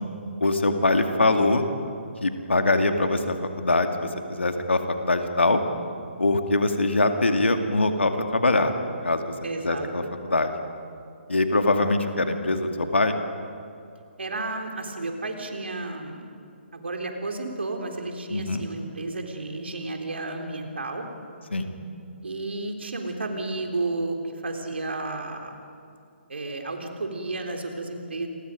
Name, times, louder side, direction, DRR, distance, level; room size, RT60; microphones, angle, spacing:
voice 1, 0.4-1.7 2.2-5.6 6.2-8.7 9.0-9.3 9.6-10.5 11.3-13.2 18.3-18.6 21.5-21.7, left 2 dB, 75° left, 5 dB, 2.3 m, -23 dB
voice 2, 9.4-10.1 14.2-16.3 16.7-21.0 22.2-24.2 24.4-25.5 26.3-28.3, right 2 dB, 70° right, 3 dB, 3.6 m, -32 dB
29.0 x 22.5 x 5.2 m, 2.5 s
figure-of-eight pair, 135°, 6 cm